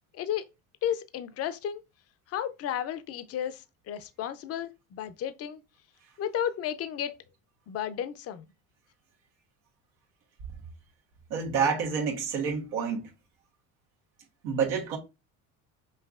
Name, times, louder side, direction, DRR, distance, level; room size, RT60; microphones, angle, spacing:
voice 1, 0.1-0.5 0.8-1.8 2.3-5.6 6.2-7.1 7.7-8.4, left 10 dB, 35° left, 0.5 m, -33 dB
voice 2, 11.3-13.1 14.4-15.0, right 6 dB, 80° right, 1.2 m, -28 dB
5.5 x 2.6 x 2.4 m
supercardioid pair, 90°, 41 cm